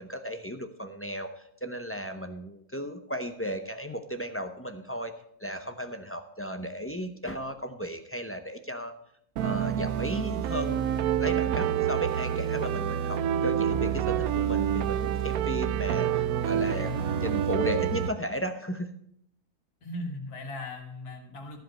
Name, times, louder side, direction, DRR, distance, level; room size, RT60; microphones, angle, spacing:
voice 1, 0.0-5.1 5.4-8.9 9.4-18.9, equal, 15° left, 7 dB, 0.5 m, -35 dB
sound 1, 9.4-18.1, right 9 dB, 75° right, 1.1 m, -27 dB
voice 2, 16.6-17.5 19.8-21.6, left 2 dB, 90° left, 3 dB, 2.3 m, -39 dB
14.0 x 5.2 x 7.6 m, 0.69 s
omnidirectional pair, 1.6 m